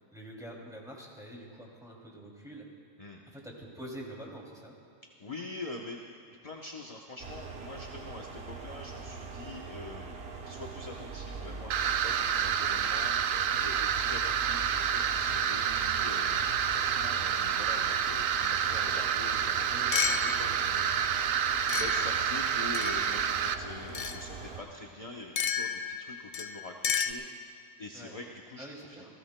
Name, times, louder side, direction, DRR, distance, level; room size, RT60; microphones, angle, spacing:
voice 1, 0.1-2.7 3.3-4.7 19.7-20.9 27.9-28.1 28.6-29.1, right 1 dB, ahead, -3 dB, 2.5 m, -46 dB
voice 2, 5.2-29.1, left 2 dB, 30° left, 0 dB, 0.8 m, -45 dB
sound 1, 7.2-24.6, right 4 dB, 50° right, 1.1 m, -42 dB
sound 2, 11.7-23.5, right 8 dB, 75° right, 1.0 m, -29 dB
sound 3, 19.3-19.4 19.9-20.8 21.7-23.2 23.9-24.2 25.4-27.1, left 7 dB, 80° left, 0.4 m, -33 dB
29.0 x 17.0 x 2.2 m, 2.5 s
omnidirectional pair, 1.4 m